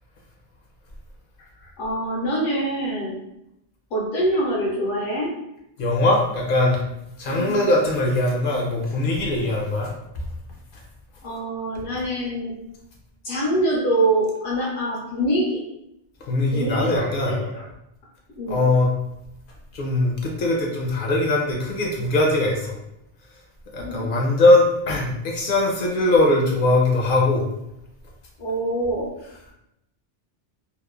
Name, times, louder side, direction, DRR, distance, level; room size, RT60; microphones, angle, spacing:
voice 1, 1.5-3.2 3.9-5.3 7.3-7.7 11.2-12.5 13.2-15.6 16.5-17.6 18.3-18.6 23.8-24.1 28.4-29.1, right 1 dB, 85° left, -5 dB, 0.9 m, -25 dB
voice 2, 5.8-6.8 7.2-9.9 10.7-10.8 16.2-17.4 18.5-18.9 19.7-22.8 23.7-27.4, left 2 dB, 60° left, -1 dB, 0.6 m, -21 dB
3.0 x 2.0 x 2.2 m, 0.84 s
omnidirectional pair, 1.2 m